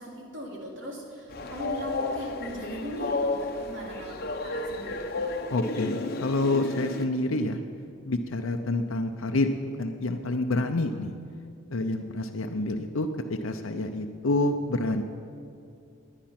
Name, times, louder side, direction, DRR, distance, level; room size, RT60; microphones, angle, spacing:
voice 1, 0.0-5.0, equal, 65° right, -2 dB, 3.3 m, -39 dB
Train, 1.3-7.1, left 2 dB, 50° left, 1.0 m, -32 dB
voice 2, 5.5-7.6 8.0-9.5 9.8-11.1 11.7-13.1 13.4-15.0, left 2 dB, 80° left, 5 dB, 0.7 m, -28 dB
20.5 x 9.8 x 6.0 m, 2.5 s
head